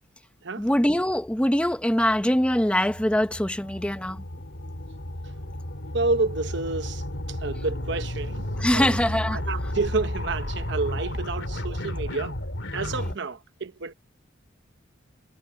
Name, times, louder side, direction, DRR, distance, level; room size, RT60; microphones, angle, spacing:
voice 1, 0.6-4.2 8.6-9.4, left 1 dB, 5° left, 0.8 m, -23 dB
sound 1, 0.7-13.2, left 1 dB, 65° left, 3.1 m, -33 dB
voice 2, 5.9-7.0 7.4-9.0 9.3-12.4 12.7-13.9, right 3 dB, 60° right, 1.0 m, -29 dB
head